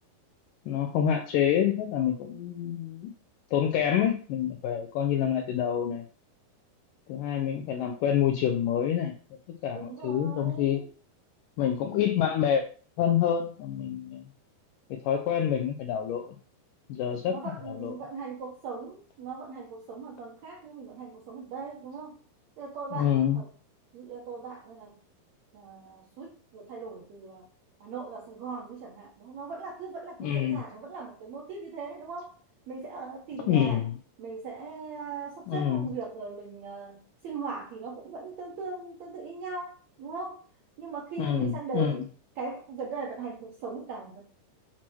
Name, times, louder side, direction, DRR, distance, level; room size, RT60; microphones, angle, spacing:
voice 1, 0.7-3.1 3.5-6.0 7.1-9.1 9.6-10.8 11.6-12.6 13.0-14.2 14.9-16.4 16.9-17.4 17.7-18.0 22.9-23.4 30.2-30.6 33.5-33.9 35.5-35.9 41.2-42.0, left 9 dB, 80° left, 5 dB, 1.9 m, -27 dB
voice 2, 9.7-10.9 17.3-22.2 22.6-23.5 23.9-25.0 25.5-27.5 27.8-32.3 32.7-33.8 34.2-40.4 40.8-42.0 42.4-44.2, right 4 dB, 70° right, -1 dB, 1.7 m, -39 dB
7.5 x 2.9 x 6.1 m, 0.40 s
omnidirectional pair, 4.5 m